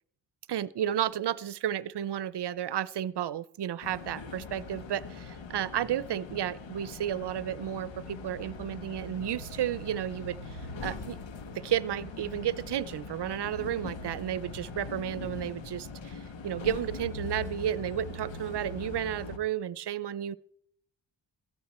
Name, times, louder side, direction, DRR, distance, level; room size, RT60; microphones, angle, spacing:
voice 1, 0.5-10.4 10.8-11.2 11.5-16.2 16.4-20.4, right 10 dB, 60° right, 19 dB, 0.7 m, -32 dB
sound 1, 3.8-19.4, left 3 dB, 75° left, 1.5 m, -41 dB
15.5 x 13.5 x 4.3 m, 0.67 s
cardioid pair, 75°, 45 cm